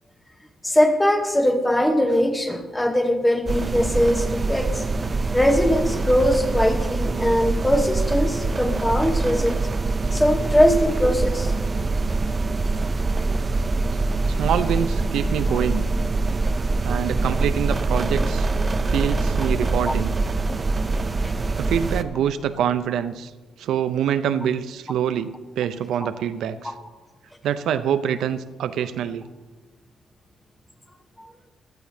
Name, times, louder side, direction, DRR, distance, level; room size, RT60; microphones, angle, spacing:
voice 1, 0.6-4.8 5.3-9.6 10.1-11.6 15.5-15.6 19.8-19.9 21.2-21.3 26.0-26.1 26.6-26.7 31.2-31.3, equal, 10° left, 6 dB, 1.2 m, -21 dB
sound 1, 3.5-22.0, right 3 dB, 30° right, 0.6 m, -24 dB
voice 2, 14.3-15.8 16.8-18.5 18.9-20.1 21.6-23.3 23.6-26.7 27.4-29.2, right 9 dB, 85° right, 11 dB, 0.6 m, -25 dB
17.0 x 12.0 x 2.8 m, 1.3 s
cardioid pair, 105°, 0 cm